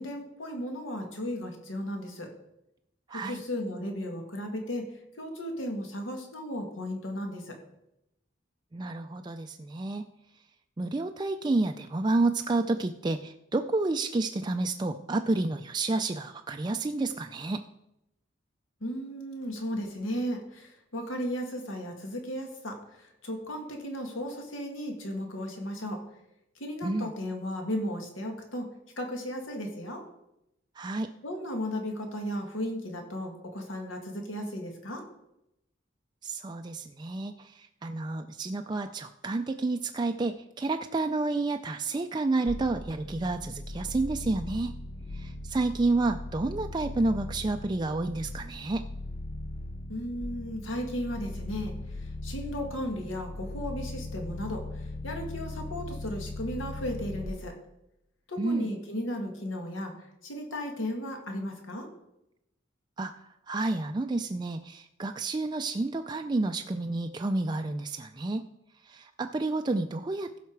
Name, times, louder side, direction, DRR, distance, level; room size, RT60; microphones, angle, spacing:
voice 1, 0.0-2.3 3.1-4.9 5.2-7.6 18.8-26.0 26.6-28.7 29.0-30.0 31.2-35.0 49.9-57.5 58.3-61.9, equal, 85° left, 3 dB, 2.0 m, -35 dB
voice 2, 3.1-3.4 8.7-10.0 10.8-17.6 26.8-27.1 30.8-31.1 36.2-44.7 45.1-48.8 58.4-58.7 63.0-63.1 63.5-68.4 68.9-70.4, right 2 dB, 20° right, 5 dB, 0.4 m, -30 dB
sound 1, 42.5-57.3, left 2 dB, 50° left, 0.8 m, -39 dB
15.5 x 5.8 x 4.6 m, 0.85 s
head